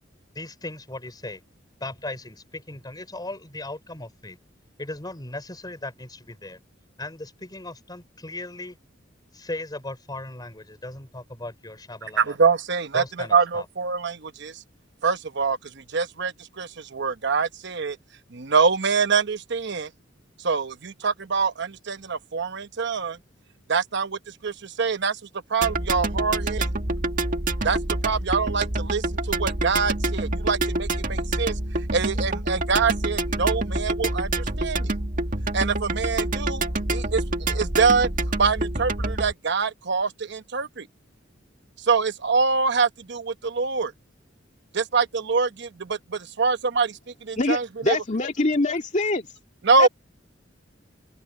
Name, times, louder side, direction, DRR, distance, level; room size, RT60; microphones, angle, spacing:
voice 1, 0.3-1.4 1.8-4.4 4.8-6.6 7.0-8.8 9.3-12.4 12.9-13.7, left 2 dB, 20° left, 4.2 m, -37 dB
voice 2, 12.2-14.5 15.0-15.6 15.9-18.0 18.3-19.9 20.4-23.2 23.7-25.2 25.5-26.7 27.6-27.8 28.0-31.5 31.9-34.9 35.5-36.6 36.9-37.2 37.5-38.1 38.4-40.9 41.9-43.9 44.7-48.0 49.6-49.9, right 5 dB, 65° right, 1.0 m, -24 dB
sound 1, 25.6-39.3, right 2 dB, 45° right, 2.0 m, -27 dB
voice 3, 47.4-49.3 49.8-49.9, left 2 dB, 40° left, 2.2 m, -24 dB
open air
head